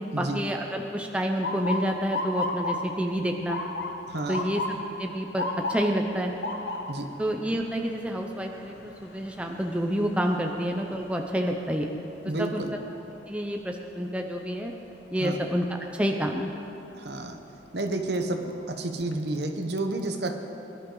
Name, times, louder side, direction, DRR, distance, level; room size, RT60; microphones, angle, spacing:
voice 1, 0.2-3.6 4.3-4.6 5.0-5.4 5.7-6.3 7.2-12.0 12.4-12.6 13.3-14.7 15.1-15.7 15.9-16.5, equal, 5° right, 2 dB, 0.6 m, -28 dB
Motor vehicle (road) / Siren, 1.4-13.3 13.8-14.2 15.0-15.3 17.2-17.4 17.9-18.0 18.4-19.1, left 2 dB, 60° left, 1.0 m, -36 dB
voice 2, 4.1-4.5 6.9-7.1 12.2-12.8 15.2-15.4 16.9-17.4 17.7-20.4, right 2 dB, 55° right, 5 dB, 1.0 m, -30 dB
21.5 x 11.5 x 3.9 m, 3.0 s
head